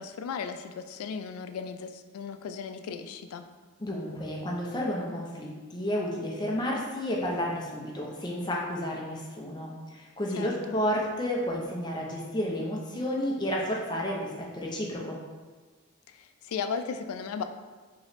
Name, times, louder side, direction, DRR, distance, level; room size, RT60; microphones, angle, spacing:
voice 1, 0.0-3.5 10.4-10.8 16.1-17.4, left 6 dB, 85° left, 8 dB, 0.3 m, -36 dB
voice 2, 3.8-15.2, equal, 20° left, -2 dB, 0.6 m, -31 dB
3.1 x 3.0 x 4.0 m, 1.4 s
head